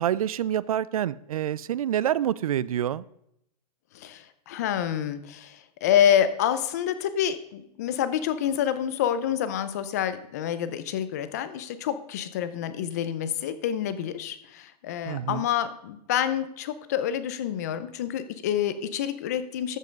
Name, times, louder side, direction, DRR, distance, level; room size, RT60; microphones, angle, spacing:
voice 1, 0.0-3.0 15.1-15.4, right 11 dB, 60° right, 20 dB, 0.4 m, -27 dB
voice 2, 3.9-19.8, left 10 dB, 25° left, 12 dB, 0.5 m, -27 dB
13.5 x 5.4 x 5.2 m, 0.76 s
hypercardioid pair, 175°, 21 cm